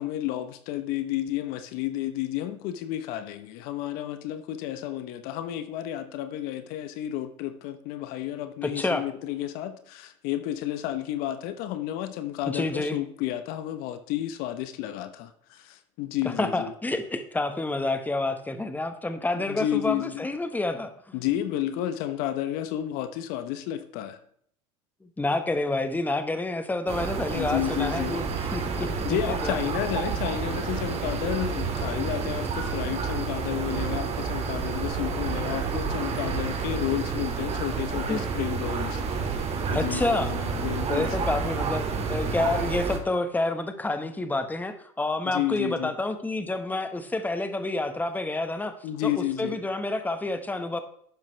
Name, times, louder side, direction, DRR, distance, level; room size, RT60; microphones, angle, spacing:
voice 1, 0.0-16.7 19.3-20.2 21.1-24.2 27.3-28.2 29.0-39.4 39.7-41.3 45.2-45.9 48.8-49.6, left 12 dB, 65° left, 1.1 m, -31 dB
voice 2, 8.6-9.0 12.4-13.0 16.2-21.1 25.0-29.6 38.1-38.3 39.7-40.3 40.9-48.7 49.0-50.8, left 2 dB, 10° left, 1.4 m, -29 dB
sound 1, 26.9-43.0, right 5 dB, 40° right, 2.4 m, -30 dB
12.0 x 9.0 x 3.4 m
hypercardioid pair, 90°, 17 cm